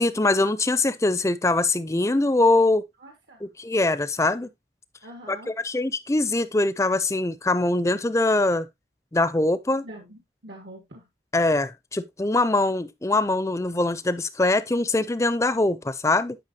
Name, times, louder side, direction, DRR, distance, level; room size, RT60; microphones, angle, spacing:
voice 1, 0.0-2.8 3.4-4.5 5.3-8.7 9.1-9.8 11.3-16.4, left 2 dB, 15° left, 0.4 m, -23 dB
voice 2, 3.0-3.4 5.0-5.5 9.8-11.0, right 1 dB, 80° right, 1.8 m, -44 dB
10.5 x 5.5 x 2.8 m
head